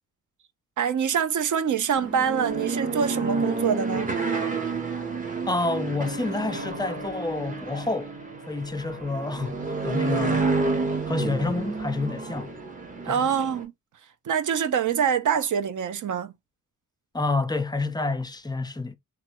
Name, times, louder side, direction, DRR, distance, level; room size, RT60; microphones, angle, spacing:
voice 1, 0.8-4.1 13.0-13.7 14.3-16.3, right 7 dB, 60° right, 0.6 m, -25 dB
sound 1, 1.9-13.6, right 3 dB, 25° right, 0.9 m, -29 dB
voice 2, 5.5-8.1 8.5-9.6 9.8-10.4 11.1-12.5 13.0-13.2 17.1-19.0, left 3 dB, 15° left, 0.3 m, -28 dB
3.1 x 2.3 x 2.9 m
wide cardioid pair, 130°, 34 cm